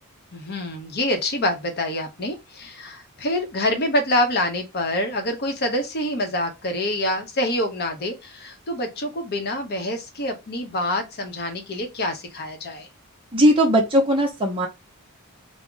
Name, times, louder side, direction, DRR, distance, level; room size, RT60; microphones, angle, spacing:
voice 1, 0.3-12.9, left 1 dB, 45° left, 0.7 m, -26 dB
voice 2, 13.3-14.7, equal, 25° right, 0.6 m, -18 dB
2.3 x 2.0 x 3.7 m
head